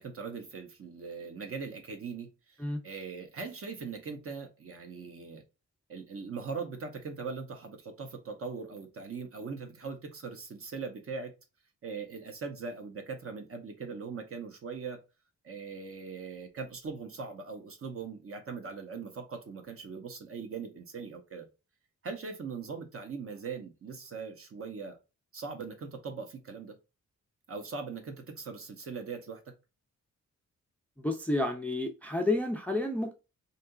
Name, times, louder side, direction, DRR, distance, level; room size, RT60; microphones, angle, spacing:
voice 1, 0.0-5.4 5.9-11.3 11.8-15.0 15.4-21.5 22.0-25.0 25.3-26.8 27.5-29.5, right 5 dB, 50° right, 0.8 m, -40 dB
voice 2, 31.0-33.1, left 2 dB, 5° left, 0.4 m, -30 dB
3.3 x 2.7 x 2.4 m
wide cardioid pair, 170°, 30 cm